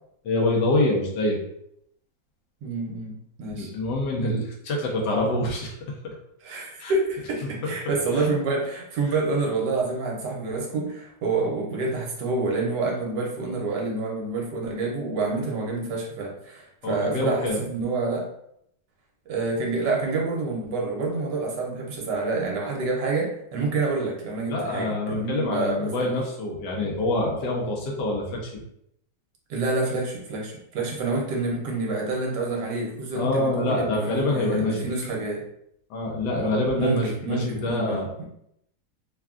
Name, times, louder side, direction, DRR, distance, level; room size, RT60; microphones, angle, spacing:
voice 1, 0.2-1.4 3.5-5.7 6.8-6.9 7.6-7.7 8.2-8.3 16.8-17.6 24.5-28.6 33.1-34.8 35.9-38.1, left 2 dB, 70° left, -1 dB, 1.2 m, -26 dB
voice 2, 2.6-3.7 6.4-18.3 19.3-26.1 29.5-35.4 36.3-38.2, right 3 dB, 75° right, -1 dB, 1.3 m, -28 dB
3.5 x 2.3 x 2.3 m, 0.74 s
omnidirectional pair, 2.0 m